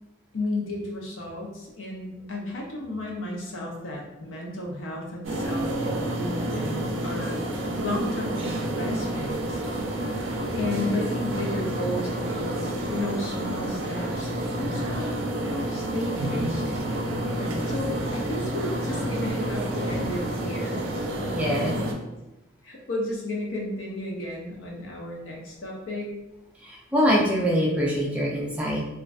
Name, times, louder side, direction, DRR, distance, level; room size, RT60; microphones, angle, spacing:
voice 1, 0.3-7.4 7.8-9.6 10.6-16.9 17.7-20.9 21.4-21.9 22.6-26.2, left 1 dB, 75° left, -1 dB, 0.6 m, -33 dB
sound 1, 5.2-21.9, right 1 dB, 75° right, 0.4 m, -29 dB
voice 2, 17.3-17.7 21.2-21.7 26.6-28.8, equal, 5° right, -4 dB, 0.3 m, -25 dB
2.5 x 2.1 x 2.4 m, 0.95 s
head